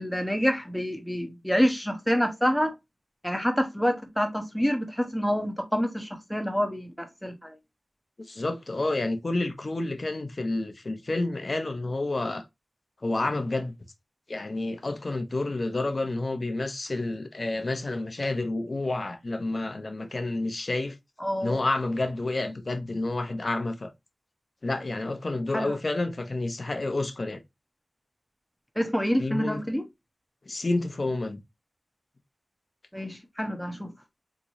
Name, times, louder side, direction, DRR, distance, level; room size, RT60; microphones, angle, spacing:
voice 1, 0.0-2.7 3.2-7.5 21.2-21.6 25.5-25.8 28.8-29.8 32.9-33.9, equal, 5° left, 0.8 m, -27 dB
voice 2, 8.3-12.4 13.0-13.7 14.3-21.0 21.4-23.9 24.6-27.4 29.2-29.6 30.5-31.4, left 2 dB, 50° left, 0.6 m, -29 dB
3.6 x 3.0 x 2.6 m
wide cardioid pair, 65°, 0 cm